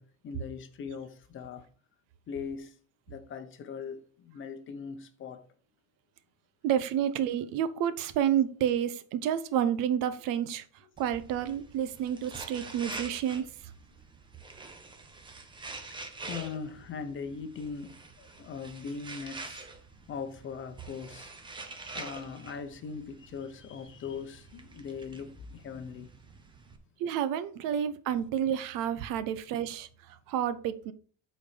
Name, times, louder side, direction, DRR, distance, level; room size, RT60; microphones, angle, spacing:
voice 1, 0.0-1.6 2.3-2.7 3.1-5.4 15.9-16.0 16.3-19.7 20.1-21.3 21.9-26.1 29.2-29.4, left 6 dB, 35° left, 0.9 m, -40 dB
voice 2, 6.6-10.6 11.0-13.5 27.0-30.9, right 9 dB, 65° right, 1.0 m, -30 dB
sound 1, 11.0-26.8, right 3 dB, 15° right, 0.9 m, -46 dB
8.1 x 4.4 x 5.0 m
cardioid pair, 160°, 36 cm